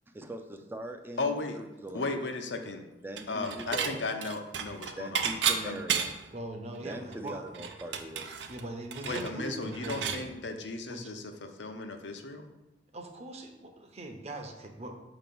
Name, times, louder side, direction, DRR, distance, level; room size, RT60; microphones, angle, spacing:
voice 1, 0.1-2.1 3.0-4.1 5.0-6.1 6.8-8.3 9.2-9.3, right 1 dB, 10° right, 6 dB, 0.4 m, -41 dB
voice 2, 1.2-1.6 1.9-2.8 3.3-5.2 5.7-5.8 9.0-12.5, left 3 dB, 85° left, 5 dB, 0.7 m, -35 dB
Dishes pots and pans / Chink clink, 3.2-3.9 4.2-6.3 6.7-6.8 7.1-10.2, right 7 dB, 80° right, 0.5 m, -32 dB
voice 3, 6.3-7.7 8.5-10.3 10.9-11.1 12.9-14.9, right 1 dB, 40° right, 3 dB, 0.8 m, -41 dB
6.6 x 3.0 x 5.3 m, 0.98 s
head